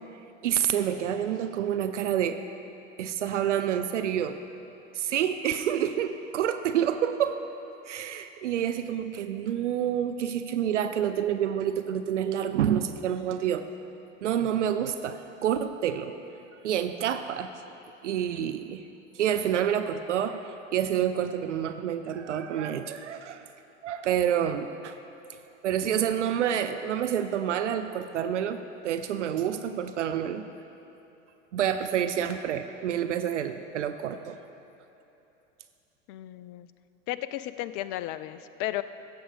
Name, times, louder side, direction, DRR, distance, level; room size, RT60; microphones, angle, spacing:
voice 1, 0.4-2.4 3.0-4.4 4.9-7.4 7.9-13.6 14.2-16.1 16.6-17.5 18.0-18.9 19.1-23.4 23.8-24.9 25.6-30.4 31.5-34.4, right 9 dB, 65° right, 9 dB, 0.6 m, -28 dB
voice 2, 36.1-36.7 37.1-38.8, left 14 dB, 30° left, 14 dB, 0.4 m, -34 dB
16.0 x 7.2 x 5.2 m, 3.0 s
figure-of-eight pair, 80°, 38 cm